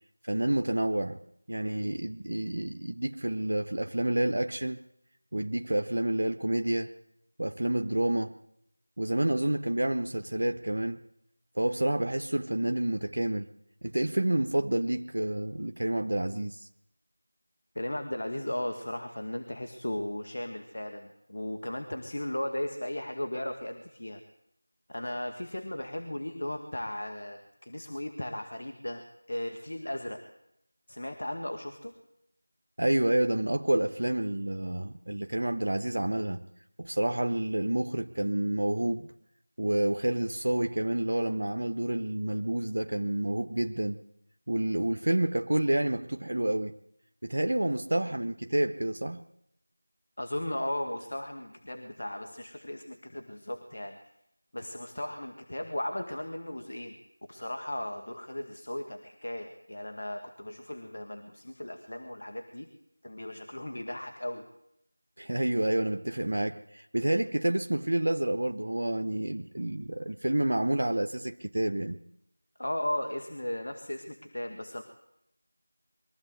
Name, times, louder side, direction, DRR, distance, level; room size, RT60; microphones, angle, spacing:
voice 1, 0.2-1.2 1.5-4.8 5.3-6.9 7.4-8.3 9.0-11.0 11.6-13.5 13.8-16.7 32.8-36.4 36.8-39.1 39.6-44.0 44.5-46.7 47.2-49.2 65.2-72.0, right 1 dB, 55° right, 8 dB, 0.9 m, -29 dB
voice 2, 17.8-24.2 24.9-30.2 30.9-31.9 50.2-54.0 54.5-56.9 57.3-62.7 63.0-64.5 72.6-74.8, left 1 dB, 55° left, 5 dB, 2.0 m, -36 dB
23.0 x 14.5 x 8.1 m, 0.79 s
figure-of-eight pair, 170°, 0 cm